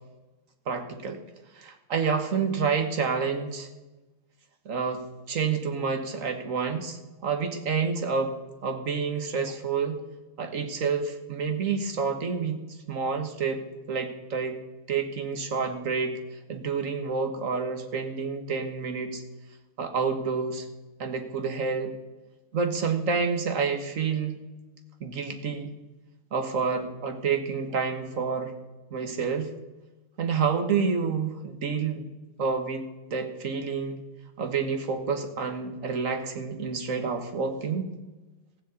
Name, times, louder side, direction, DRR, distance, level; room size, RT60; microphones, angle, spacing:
voice 1, 0.7-1.2 1.6-3.7 4.7-8.4 8.6-10.0 10.4-12.6 12.9-14.6 14.9-16.1 16.5-19.2 19.8-20.7 21.0-21.9 22.5-24.4 25.0-25.7 26.3-28.5 28.9-29.5 30.2-32.1 32.4-32.9 33.1-34.0 34.4-37.9, right 5 dB, 55° right, 6 dB, 1.7 m, -28 dB
15.0 x 7.4 x 8.2 m, 1.1 s
omnidirectional pair, 1.7 m